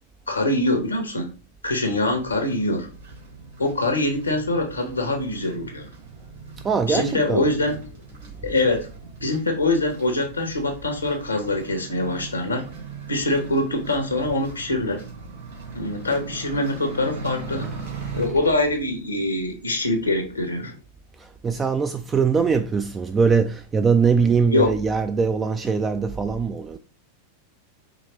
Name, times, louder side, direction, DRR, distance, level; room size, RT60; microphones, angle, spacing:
voice 1, 0.3-1.3 1.6-2.9 3.6-5.9 6.9-7.8 8.4-8.9 9.2-12.7 13.1-15.0 15.7-17.7 18.1-20.7 24.5-24.7, left 2 dB, 80° left, 0.9 m, -24 dB
sound 1, 2.1-18.3, right 4 dB, 65° right, 2.5 m, -39 dB
voice 2, 6.6-7.4 21.2-26.8, right 5 dB, 20° right, 0.3 m, -22 dB
4.9 x 3.1 x 3.0 m
figure-of-eight pair, 90°, 0 cm